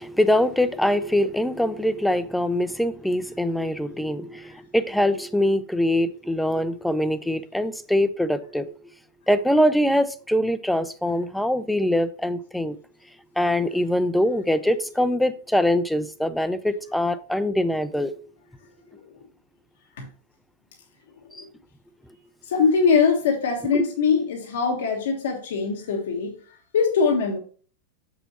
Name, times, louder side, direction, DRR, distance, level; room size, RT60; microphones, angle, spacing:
voice 1, 0.0-8.7 9.3-12.8 13.4-18.1 21.3-21.5 23.7-23.9, left 1 dB, ahead, 0.5 m, -23 dB
voice 2, 22.4-26.3 26.7-27.4, left 5 dB, 80° left, 1.2 m, -22 dB
6.7 x 6.2 x 2.9 m
supercardioid pair, 130°, 0 cm